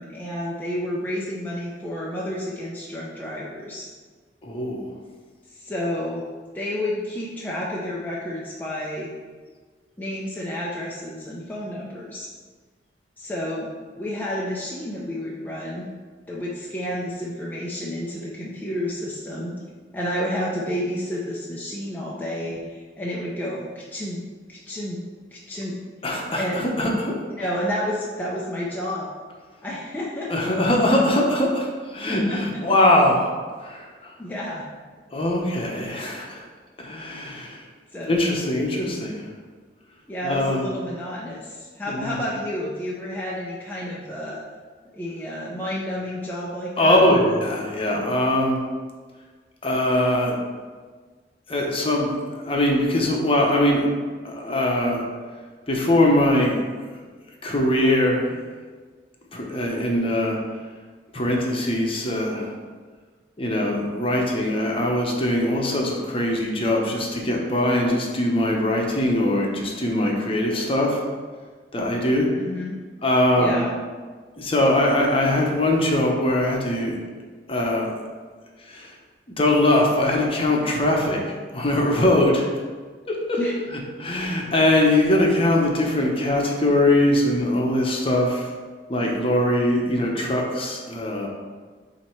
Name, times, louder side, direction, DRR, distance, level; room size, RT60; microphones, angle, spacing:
voice 1, 0.0-3.9 5.5-6.3 6.5-9.1 10.0-12.3 13.2-13.7 14.0-15.9 16.3-19.5 19.9-25.0 25.3-25.8 26.4-26.6 27.4-29.1 29.6-30.5 32.1-32.6 34.2-34.7 37.9-38.2 40.1-44.4 44.9-47.0 72.4-72.8 73.4-73.7 83.4-83.6, left 1 dB, 10° left, -5 dB, 0.6 m, -30 dB
voice 2, 4.4-4.9 26.0-26.4 26.8-27.1 30.3-33.3 33.6-34.1 35.1-36.4 36.8-37.6 38.1-39.3 40.2-40.7 41.9-42.2 46.8-48.6 49.6-50.4 51.5-53.9 54.2-55.0 55.7-56.6 57.4-58.4 59.3-60.4 61.1-62.5 63.4-71.0 71.7-72.3 73.0-73.7 74.4-77.0 77.5-78.0 78.7-78.9 79.4-81.2 81.5-82.5 83.1-83.4 84.0-88.5 88.9-91.3, left 1 dB, 30° left, 0 dB, 1.0 m, -21 dB
7.4 x 2.9 x 4.6 m, 1.5 s
head